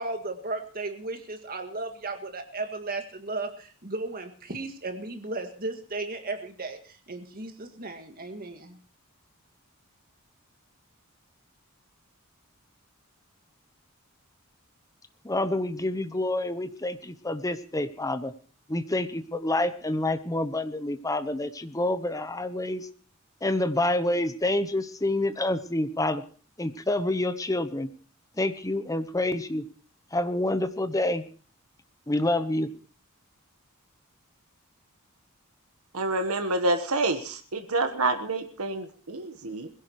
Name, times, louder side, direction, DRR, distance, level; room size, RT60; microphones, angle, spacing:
voice 1, 0.0-8.8, right 2 dB, 45° right, 6 dB, 1.9 m, -35 dB
voice 2, 15.2-18.3 18.7-22.9 23.4-26.2 26.6-27.9 28.4-29.6 30.1-31.2 32.1-32.7, left 1 dB, 15° left, 11 dB, 0.9 m, -27 dB
voice 3, 35.9-39.7, right 2 dB, 85° right, 7 dB, 1.2 m, -28 dB
21.0 x 16.0 x 3.1 m, 0.41 s
head